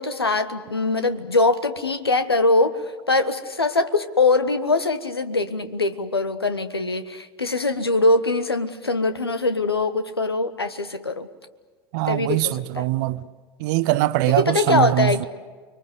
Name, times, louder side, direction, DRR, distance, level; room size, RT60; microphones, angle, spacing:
voice 1, 0.0-2.8 3.1-11.3 12.1-12.9 14.3-15.3, left 2 dB, 85° left, 1.3 m, -22 dB
voice 2, 11.9-13.2 13.6-15.3, right 17 dB, 55° right, 0.8 m, -22 dB
29.5 x 23.0 x 8.0 m
figure-of-eight pair, 75°, 13 cm